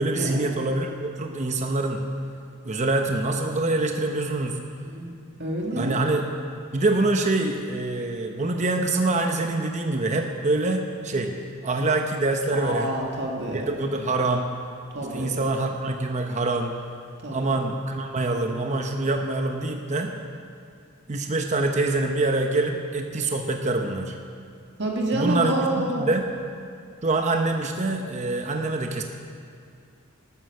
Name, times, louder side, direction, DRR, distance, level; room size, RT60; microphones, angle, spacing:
voice 1, 0.0-2.1 2.6-4.6 5.8-6.3 6.7-13.0 13.5-14.5 15.1-16.8 17.3-20.1 21.1-24.2 25.1-26.2 27.0-29.0, right 2 dB, 35° right, 4 dB, 0.8 m, -25 dB
voice 2, 4.8-5.1 5.4-6.0 12.5-13.7 14.9-15.3 17.2-17.4 24.8-26.0, right 1 dB, 55° right, -1 dB, 1.9 m, -28 dB
12.5 x 9.3 x 6.5 m, 2.4 s
head